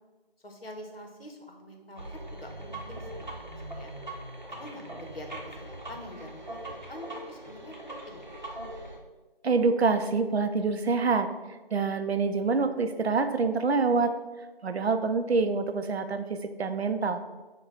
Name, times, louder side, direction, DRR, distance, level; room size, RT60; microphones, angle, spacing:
voice 1, 0.4-3.9 4.5-8.3, equal, 70° left, 3 dB, 1.0 m, -46 dB
sound 1, 2.0-9.0, right 1 dB, 45° right, 0.7 m, -41 dB
voice 2, 9.4-11.3 11.7-14.1 14.6-17.2, right 4 dB, 85° right, 8 dB, 0.5 m, -26 dB
4.8 x 2.3 x 4.4 m, 1.2 s
figure-of-eight pair, 175°, 31 cm